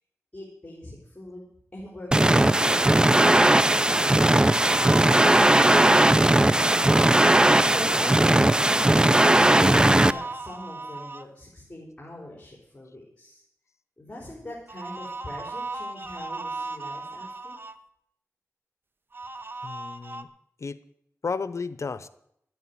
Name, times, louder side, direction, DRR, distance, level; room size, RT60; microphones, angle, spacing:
voice 1, 0.3-1.5 1.7-6.8 7.6-8.7 10.0-13.4 14.0-17.6, left 1 dB, 25° left, -3 dB, 4.2 m, -42 dB
sound 1, 2.1-10.1, right 1 dB, 15° right, 0.5 m, -18 dB
sound 2, 4.5-6.2 6.7-7.4 9.6-11.2 14.7-17.8 19.1-20.2, right 3 dB, 40° right, 0.9 m, -36 dB
voice 2, 19.6-20.3 20.6-20.8 21.2-22.1, left 4 dB, 70° left, 15 dB, 0.8 m, -32 dB
11.5 x 9.3 x 9.4 m, 0.73 s
wide cardioid pair, 80°, 5 cm